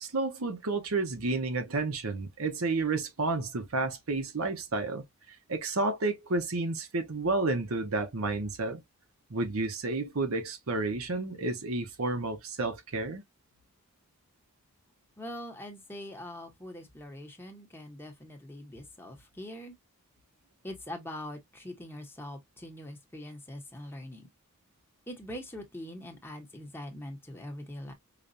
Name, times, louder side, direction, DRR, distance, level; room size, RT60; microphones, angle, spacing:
voice 1, 0.0-5.0 5.5-8.8 9.3-13.2, right 3 dB, 75° right, 0.9 m, -31 dB
voice 2, 15.2-19.8 20.6-24.3 25.1-27.9, left 1 dB, 10° left, 0.9 m, -43 dB
5.0 x 2.4 x 2.6 m
head